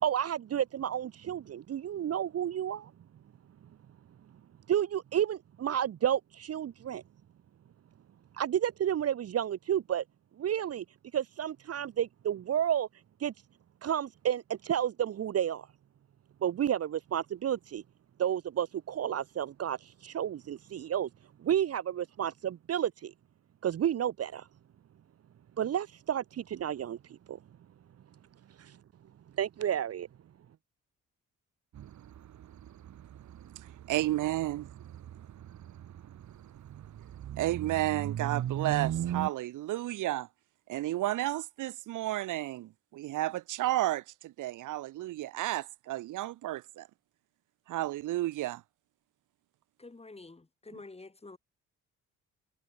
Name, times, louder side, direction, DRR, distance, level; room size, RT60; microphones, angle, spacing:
voice 1, 0.0-2.9 4.7-7.0 8.4-10.0 10.4-10.8 11.1-12.9 13.2-13.3 13.8-15.7 16.4-17.8 18.2-21.1 21.4-23.1 23.6-24.5 25.6-27.0 27.3-27.4 28.6-28.8 29.4-30.1, right 10 dB, 55° right, 1.1 m, -31 dB
sound 1, 31.7-39.3, right 11 dB, 70° right, 5.8 m, -39 dB
voice 2, 33.9-34.6 37.4-40.3 40.7-46.9 47.7-48.6, right 15 dB, 85° right, 2.3 m, -32 dB
voice 3, 49.8-51.4, left 3 dB, 20° left, 7.4 m, -48 dB
cardioid pair, 90°, 30 cm